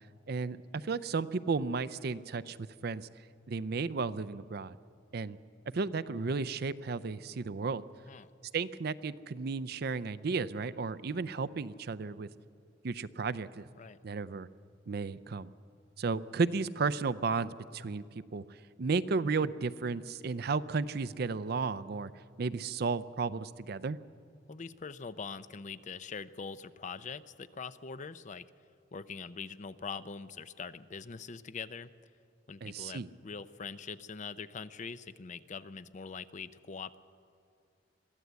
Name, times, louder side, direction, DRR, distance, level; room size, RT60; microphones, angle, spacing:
voice 1, 0.3-3.1 3.5-4.8 5.1-5.4 5.7-7.8 8.5-12.3 12.8-13.7 14.0-14.5 14.9-15.5 16.0-18.0 18.3-18.4 18.8-22.1 22.4-24.0 32.6-33.1, right 4 dB, 55° right, 16 dB, 0.5 m, -33 dB
voice 2, 24.5-28.5 28.9-31.9 32.5-37.0, left 5 dB, 40° left, 14 dB, 0.5 m, -43 dB
22.5 x 14.0 x 8.1 m, 2.4 s
head